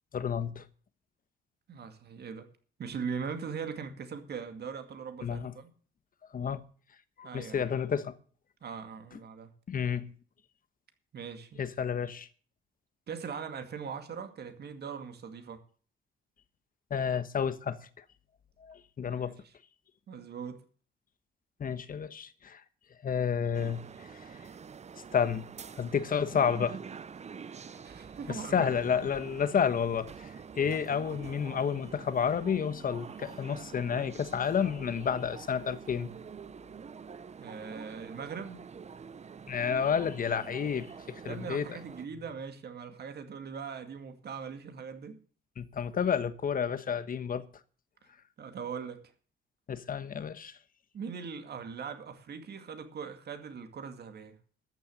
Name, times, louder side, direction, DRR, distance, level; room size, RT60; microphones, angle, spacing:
voice 1, 0.1-0.6 5.2-5.5 6.3-6.6 7.2-8.1 9.7-10.1 11.6-12.3 16.9-18.0 18.6-19.3 21.6-22.6 23.0-24.2 25.1-25.4 25.8-26.8 28.3-36.1 39.5-41.7 45.6-47.4 49.7-50.6, left 7 dB, 45° left, 1.3 m, -30 dB
voice 2, 1.7-2.5 2.8-5.7 7.2-7.7 8.6-9.5 11.1-11.6 13.1-15.6 19.1-19.4 20.1-20.6 27.5-28.7 37.4-38.6 41.3-45.2 48.4-49.1 50.9-54.4, right 6 dB, 55° right, 2.2 m, -40 dB
sound 1, 23.5-42.1, right 6 dB, 35° right, 0.8 m, -46 dB
13.5 x 6.9 x 8.7 m
cardioid pair, 90°, 20 cm